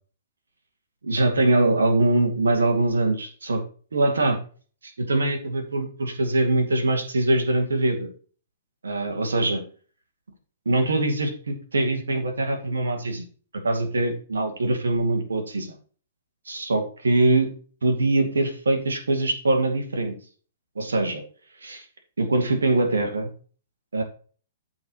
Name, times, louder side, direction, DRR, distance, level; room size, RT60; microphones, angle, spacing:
voice 1, 1.0-3.6 3.9-4.4 4.8-8.1 8.8-9.6 10.7-13.3 13.6-15.7 16.5-17.5 17.8-20.2 20.8-21.2 21.6-21.8 22.2-23.3 23.9-24.0, right 2 dB, 75° right, 4 dB, 2.3 m, -23 dB
14.0 x 4.8 x 3.1 m, 0.40 s
figure-of-eight pair, 115°, 0 cm